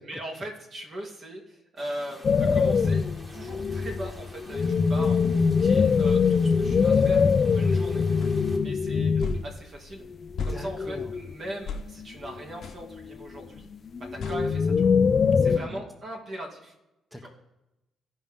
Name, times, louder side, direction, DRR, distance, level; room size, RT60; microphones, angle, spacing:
voice 1, 0.1-5.2 5.6-8.1 8.6-10.0 10.4-13.7 14.1-14.7 15.4-16.7, right 1 dB, 50° right, 0 dB, 2.4 m, -39 dB
sound 1, 1.8-8.6, equal, 20° right, 2.1 m, -50 dB
sound 2, 2.2-9.5 10.1-11.3 11.9-12.4 12.9-15.6, left 5 dB, 45° left, 0.5 m, -23 dB
sound 3, 8.2-8.3 9.2-9.5 10.4-10.6 11.7-11.9 12.6-12.8 14.2-14.4, left 4 dB, 65° left, 1.0 m, -32 dB
voice 2, 10.5-11.1 15.4-15.8 17.1-17.3, left 1 dB, ahead, 3 dB, 0.9 m, -41 dB
15.5 x 5.3 x 3.6 m, 0.94 s
cardioid pair, 90°, 0 cm